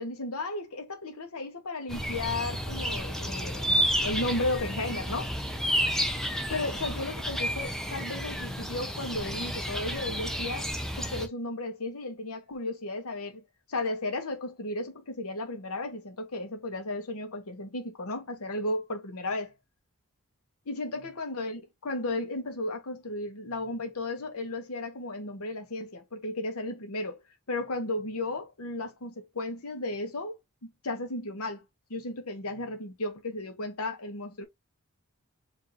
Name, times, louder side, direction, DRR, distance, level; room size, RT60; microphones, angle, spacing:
voice 1, 0.0-5.3 6.5-10.7 11.0-13.4 13.7-19.5 20.7-27.2 27.5-30.4 30.6-31.6 31.9-34.5, left 2 dB, 80° left, 1.0 m, -34 dB
sound 1, 1.9-11.3, equal, ahead, 0.6 m, -31 dB
4.8 x 2.7 x 2.7 m
head